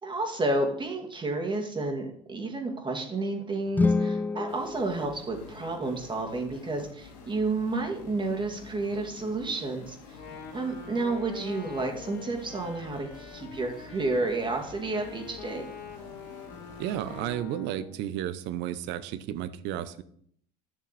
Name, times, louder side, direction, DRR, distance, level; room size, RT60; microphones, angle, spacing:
voice 1, 0.0-10.0 10.5-15.6, right 2 dB, 20° right, 2 dB, 2.3 m, -31 dB
sound 1, 3.7-5.9, left 3 dB, 10° left, 0.3 m, -29 dB
sound 2, 4.5-17.4, left 4 dB, 75° left, 2.0 m, -49 dB
Wind instrument woodwind instrument, 10.0-18.0, left 6 dB, 50° left, 2.8 m, -45 dB
voice 2, 16.8-20.0, right 11 dB, 55° right, 14 dB, 0.9 m, -33 dB
11.5 x 6.4 x 4.3 m, 0.64 s
hypercardioid pair, 80°, 21 cm